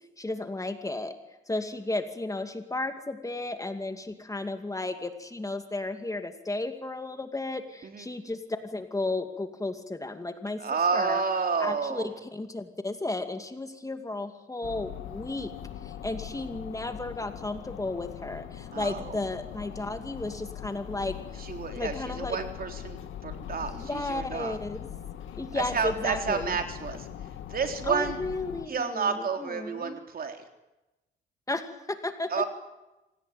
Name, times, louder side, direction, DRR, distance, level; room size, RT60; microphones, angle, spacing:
voice 1, 0.2-1.1 1.5-10.6 10.9-11.2 11.6-15.5 15.8-21.4 21.8-22.4 23.7-24.8 25.3-26.6 27.9-30.0 31.5-32.3, left 2 dB, 15° left, 7 dB, 2.6 m, -34 dB
voice 2, 10.6-12.1 18.7-19.2 21.4-24.6 25.5-27.1 27.5-28.2 28.7-30.4 32.3-32.4, right 5 dB, 50° right, 5 dB, 3.6 m, -30 dB
sound 1, 14.6-28.7, left 10 dB, 80° left, 2.1 m, -41 dB
26.0 x 18.5 x 9.4 m, 1.0 s
cardioid pair, 90°, 20 cm